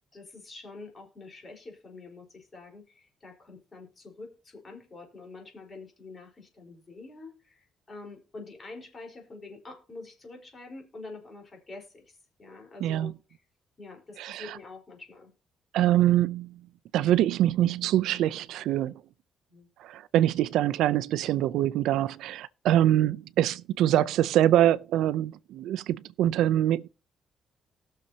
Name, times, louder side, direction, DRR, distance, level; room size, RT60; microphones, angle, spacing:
voice 1, 0.1-13.4 13.8-15.3 19.5-19.7, left 3 dB, 30° left, 4.3 m, -46 dB
voice 2, 12.8-13.1 14.2-14.4 15.7-16.5 16.9-18.9 19.8-26.9, right 12 dB, 85° right, 0.5 m, -24 dB
19.5 x 6.7 x 2.8 m
cardioid pair, 125°, 0 cm